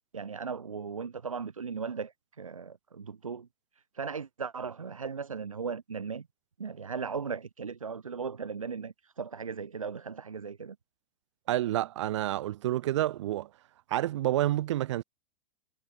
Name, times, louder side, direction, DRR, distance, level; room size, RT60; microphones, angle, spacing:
voice 1, 0.0-3.5 3.9-6.3 6.6-10.7, right 5 dB, 85° right, 1.7 m, -37 dB
voice 2, 11.5-13.5 13.9-15.0, right 14 dB, 60° right, 3.3 m, -29 dB
figure-of-eight pair, 100°, 17 cm